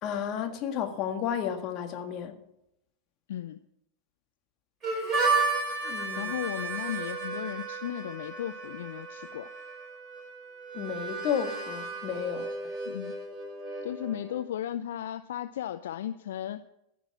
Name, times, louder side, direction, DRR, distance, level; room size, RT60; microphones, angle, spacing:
voice 1, 0.0-2.4 5.8-6.3 10.7-12.8, left 8 dB, 35° left, 1.7 m, -32 dB
voice 2, 3.3-3.6 6.2-9.5 12.9-13.2 13.8-16.6, left 11 dB, 60° left, 0.5 m, -35 dB
Harmonica, 4.8-14.4, right 4 dB, 20° right, 4.8 m, -33 dB
15.5 x 6.1 x 7.3 m
figure-of-eight pair, 90°, 0 cm